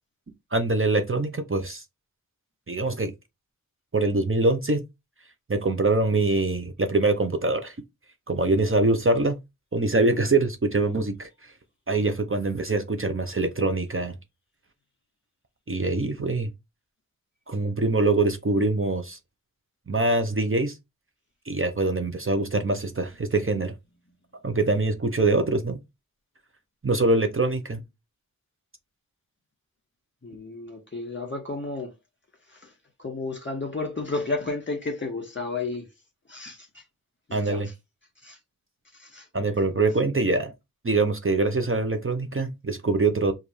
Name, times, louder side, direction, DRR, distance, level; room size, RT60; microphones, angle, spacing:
voice 1, 0.5-1.8 2.7-3.1 3.9-4.8 5.5-7.8 8.3-9.3 9.7-11.3 11.9-14.1 15.7-16.5 17.5-19.2 19.9-20.8 21.5-23.7 24.4-25.8 26.8-27.8 37.3-37.7 39.3-40.5 40.8-43.3, right 2 dB, 40° right, 0.8 m, -24 dB
voice 2, 30.2-31.9 32.5-32.7 33.0-35.9 36.3-36.8 37.3-37.7 38.2-38.4 38.9-39.3 39.7-39.9, left 3 dB, 35° left, 1.9 m, -32 dB
5.1 x 2.6 x 3.2 m
wide cardioid pair, 55°, 33 cm